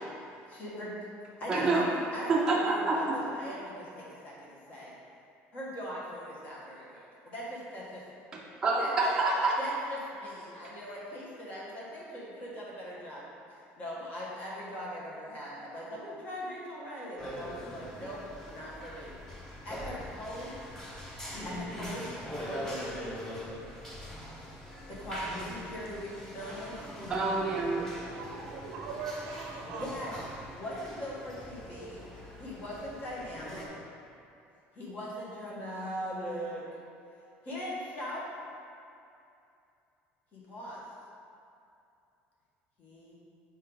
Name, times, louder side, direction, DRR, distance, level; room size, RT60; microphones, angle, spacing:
voice 1, 0.4-0.9 1.4-5.0 5.5-8.0 8.8-9.1 9.6-19.1 19.6-20.6 21.4-22.8 24.9-26.8 29.8-32.1 32.4-33.7 34.7-36.6 37.4-38.3 40.3-40.8 42.8-43.1, equal, 35° left, -5 dB, 1.3 m, -40 dB
voice 2, 1.5-1.9 2.3-3.2 8.6-9.5 27.1-27.8, right 3 dB, 15° right, -5 dB, 0.6 m, -27 dB
sound 1, 17.2-33.7, equal, 10° left, 0.9 m, -42 dB
voice 3, 27.7-30.2, right 4 dB, 65° right, 0 dB, 0.6 m, -41 dB
5.4 x 4.5 x 3.9 m, 2.6 s
cardioid pair, 165°, 5 cm